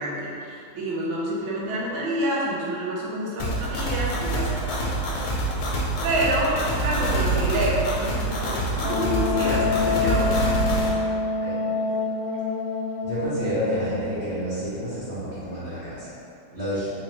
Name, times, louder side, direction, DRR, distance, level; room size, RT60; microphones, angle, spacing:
voice 1, 0.0-4.6 6.0-10.6 11.6-11.7, right 1 dB, 80° right, -5 dB, 1.4 m, -28 dB
sound 1, 3.4-10.9, right 2 dB, 85° left, 1.5 m, -26 dB
Wind instrument woodwind instrument, 8.8-14.3, left 5 dB, 70° left, 1.3 m, -27 dB
voice 2, 13.0-16.1 16.5-16.9, right 1 dB, 45° right, -13 dB, 0.9 m, -29 dB
3.9 x 2.6 x 3.0 m, 2.5 s
omnidirectional pair, 2.2 m